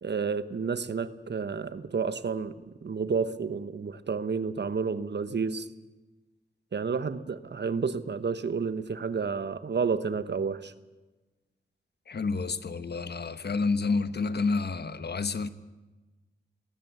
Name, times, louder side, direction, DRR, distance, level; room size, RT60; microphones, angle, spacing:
voice 1, 0.0-2.5 2.8-5.7 6.7-10.7, right 5 dB, 60° right, 13 dB, 1.2 m, -30 dB
voice 2, 12.1-15.5, left 4 dB, 60° left, 13 dB, 1.1 m, -29 dB
20.0 x 18.0 x 8.1 m, 1.2 s
wide cardioid pair, 75°, 20 cm